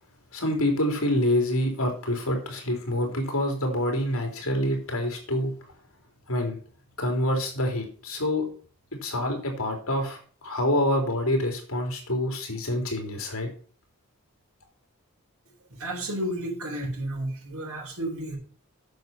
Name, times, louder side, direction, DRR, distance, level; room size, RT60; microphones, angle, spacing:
voice 1, 0.3-5.5 6.3-6.6 7.0-8.4 9.0-13.5, left 1 dB, 70° left, 3 dB, 3.5 m, -26 dB
voice 2, 15.7-18.4, right 1 dB, 80° right, -3 dB, 4.4 m, -32 dB
9.4 x 6.8 x 5.8 m, 0.43 s
head